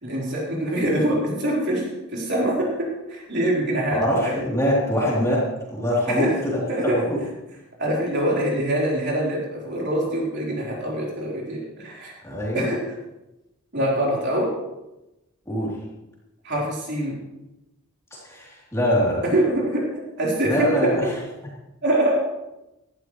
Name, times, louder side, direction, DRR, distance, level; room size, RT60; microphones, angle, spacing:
voice 1, 0.0-2.7 3.1-4.3 6.1-6.3 6.7-7.0 7.8-12.1 12.5-12.8 13.7-14.5 16.4-17.2 19.3-19.8 20.2-20.7 21.8-22.2, right 1 dB, 50° right, -4 dB, 4.1 m, -24 dB
voice 2, 3.9-7.2 12.2-12.7 15.5-15.8 18.1-19.2 20.4-21.1, equal, 15° left, -5 dB, 3.3 m, -23 dB
17.0 x 12.5 x 3.2 m, 0.96 s
head